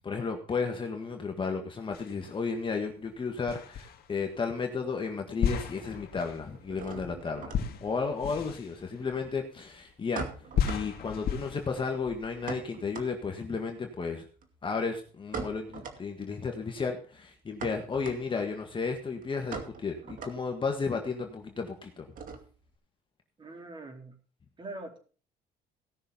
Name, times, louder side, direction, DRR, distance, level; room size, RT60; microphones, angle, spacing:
voice 1, 0.0-7.5 7.8-10.3 10.6-14.2 14.6-22.1, left 5 dB, 30° left, 3 dB, 1.7 m, -33 dB
sound 1, 1.9-2.7 3.5-4.4 5.4-9.9 10.5-12.5, left 8 dB, 65° left, 2.0 m, -35 dB
sound 2, 2.9-4.5 4.8-5.5 5.7-22.8, right 5 dB, 55° right, 2.3 m, -44 dB
voice 2, 23.4-24.1 24.6-25.0, right 2 dB, 30° right, 3 dB, 4.0 m, -42 dB
17.5 x 6.4 x 5.8 m, 0.40 s
cardioid pair, 110°, 17 cm